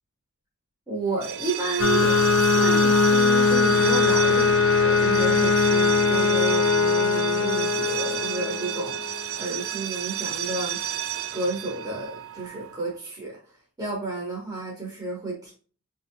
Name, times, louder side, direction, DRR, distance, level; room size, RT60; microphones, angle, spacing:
voice 1, 0.9-10.8 11.3-13.4 13.8-15.5, right 2 dB, 20° right, -3 dB, 0.9 m, -31 dB
sound 1, 1.1-12.8, right 10 dB, 80° right, 0.4 m, -32 dB
sound 2, 1.8-9.1, left 4 dB, 70° left, 0.4 m, -21 dB
5.6 x 2.7 x 2.5 m, 0.40 s
head